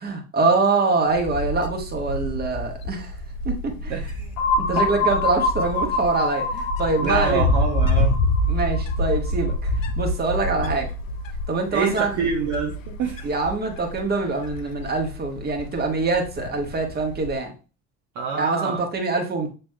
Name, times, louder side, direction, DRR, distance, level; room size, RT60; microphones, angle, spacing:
voice 1, 0.0-3.1 3.4-3.9 4.6-7.5 8.5-9.7 10.0-10.9 11.5-12.1 13.2-17.5 18.3-19.5, right 3 dB, 25° right, 1.4 m, -24 dB
Wind, 1.1-17.4, left 1 dB, 85° left, 0.5 m, -27 dB
voice 2, 3.9-4.3 4.6-4.9 7.0-8.2 11.7-13.3 18.1-18.8, right 5 dB, 50° right, 1.0 m, -26 dB
sound 1, 4.4-10.0, left 2 dB, 45° left, 1.0 m, -26 dB
7.1 x 3.3 x 2.2 m
figure-of-eight pair, 60°, 38 cm